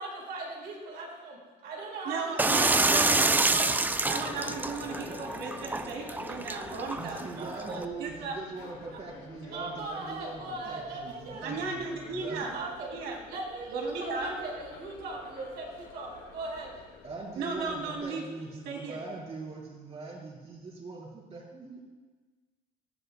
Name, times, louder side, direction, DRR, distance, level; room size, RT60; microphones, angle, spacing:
voice 1, 0.0-3.3 3.9-4.0 7.4-7.9 9.4-11.4 12.5-12.9 13.2-16.7, right 2 dB, 70° right, -2 dB, 4.4 m, -38 dB
voice 2, 2.0-3.7 4.0-7.2 7.7-8.3 11.4-12.5 12.9-13.2 13.7-14.3 17.4-18.2 18.6-19.0, right 4 dB, 90° right, 1 dB, 2.6 m, -35 dB
sound 1, 2.4-7.8, right 2 dB, 10° right, 0.4 m, -28 dB
sound 2, 2.5-18.0, left 6 dB, 90° left, 1.8 m, -49 dB
voice 3, 7.0-12.6 17.0-21.8, right 3 dB, 35° right, -2 dB, 4.0 m, -42 dB
18.5 x 13.5 x 2.2 m, 1.3 s
cardioid pair, 110°, 17 cm